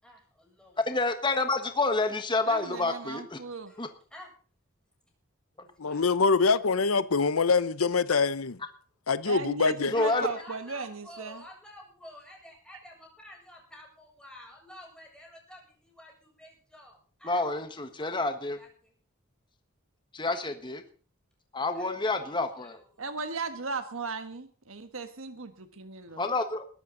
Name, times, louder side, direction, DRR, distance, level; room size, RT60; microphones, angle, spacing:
voice 1, 0.0-0.8 3.7-3.8 4.1-4.3 5.5-6.2 9.9-17.4 17.9-18.9 21.7-23.1, left 1 dB, 5° left, 7.5 m, -50 dB
voice 2, 0.9-3.4 3.8-3.9 9.9-10.3 17.2-18.6 20.1-20.8 21.5-22.8 26.2-26.6, left 3 dB, 20° left, 1.4 m, -28 dB
voice 3, 2.4-3.7 9.2-11.4 23.0-26.2, right 4 dB, 70° right, 1.5 m, -37 dB
voice 4, 5.8-8.6 9.1-9.9, left 4 dB, 85° left, 0.8 m, -24 dB
21.0 x 13.0 x 3.9 m
head